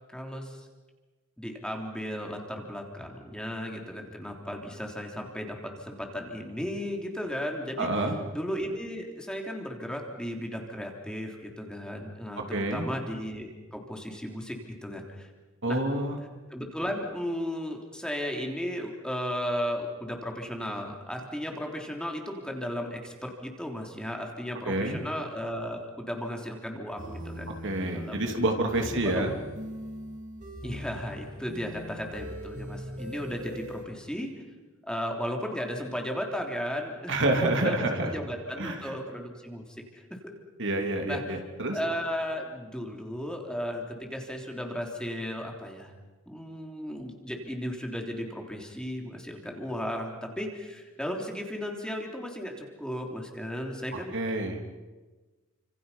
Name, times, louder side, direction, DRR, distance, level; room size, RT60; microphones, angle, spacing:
voice 1, 0.1-0.6 1.4-7.9 8.3-15.3 15.7-15.8 16.5-27.5 27.9-28.3 28.8-29.2 30.6-34.3 34.9-37.1 37.6-39.7 39.9-40.0 41.1-41.2 41.7-45.9 46.3-54.1, equal, 5° left, 1 dB, 3.2 m, -35 dB
voice 2, 7.8-8.2 12.5-12.9 15.6-16.2 24.6-25.0 27.6-29.3 37.1-38.1 38.6-39.0 40.6-41.8 54.1-54.6, right 1 dB, 60° right, 3 dB, 3.1 m, -28 dB
sound 1, 27.0-33.8, equal, 40° right, 5.2 m, -41 dB
29.5 x 26.5 x 5.6 m, 1.2 s
head